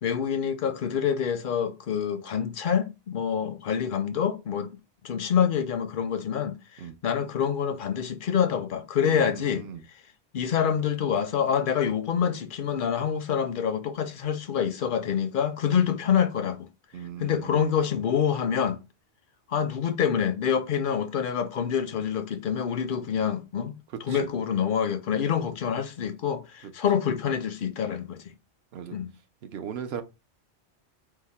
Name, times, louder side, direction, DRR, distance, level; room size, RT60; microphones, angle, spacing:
voice 1, 0.0-4.7 5.0-9.7 10.3-16.7 17.2-18.8 19.5-28.3 28.9-29.1, left 8 dB, 60° left, 0.6 m, -26 dB
voice 2, 9.0-9.8 15.7-15.8 16.9-17.6 24.1-24.2 28.7-29.0 29.5-30.0, right 8 dB, 65° right, 0.8 m, -38 dB
4.7 x 2.1 x 4.1 m
omnidirectional pair, 1.2 m